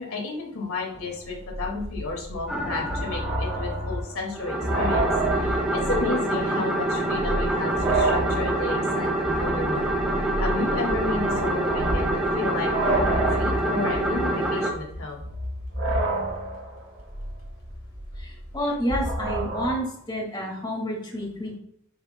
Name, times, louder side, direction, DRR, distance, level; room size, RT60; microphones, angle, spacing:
voice 1, 0.0-9.9 10.4-15.2, left 3 dB, 75° left, 0 dB, 2.1 m, -32 dB
sound 1, 1.0-1.1 1.3-6.1 6.4-6.5 7.1-19.7, right 1 dB, 70° right, 3.1 m, -29 dB
sound 2, 2.5-3.9 4.3-14.7, right 1 dB, 5° right, 1.2 m, -26 dB
voice 2, 18.2-21.6, equal, 20° left, -1 dB, 1.9 m, -29 dB
10.5 x 8.7 x 2.2 m, 0.72 s
head